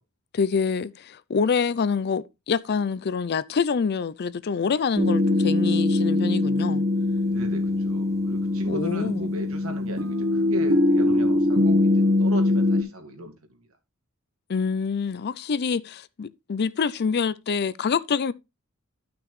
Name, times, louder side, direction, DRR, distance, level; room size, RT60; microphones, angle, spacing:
voice 1, 0.3-6.8 8.7-9.2 14.5-18.3, left 5 dB, 50° left, 0.4 m, -26 dB
sound 1, 5.0-12.8, left 2 dB, 50° right, 1.6 m, -22 dB
voice 2, 7.3-13.7, right 1 dB, 75° right, 2.2 m, -37 dB
12.5 x 6.0 x 3.2 m
head